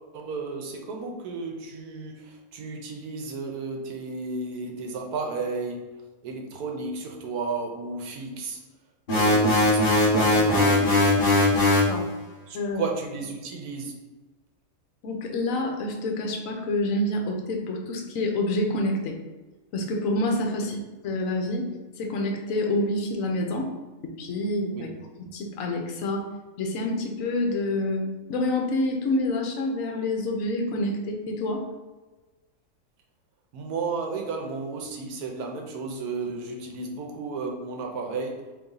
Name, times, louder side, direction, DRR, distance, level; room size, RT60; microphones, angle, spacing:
voice 1, 0.1-5.9 6.2-8.6 9.1-10.9 12.5-13.9 20.6-20.7 24.7-25.0 33.5-38.4, right 4 dB, 75° right, 2 dB, 1.3 m, -33 dB
sound 1, 9.1-11.9, left 2 dB, 40° left, 1.1 m, -20 dB
voice 2, 15.0-19.2 19.7-20.8 21.0-21.7 22.0-23.7 24.0-24.9 25.2-26.3 26.6-31.7, left 1 dB, 65° left, 3 dB, 1.1 m, -27 dB
4.0 x 3.1 x 3.8 m, 1.2 s
omnidirectional pair, 1.6 m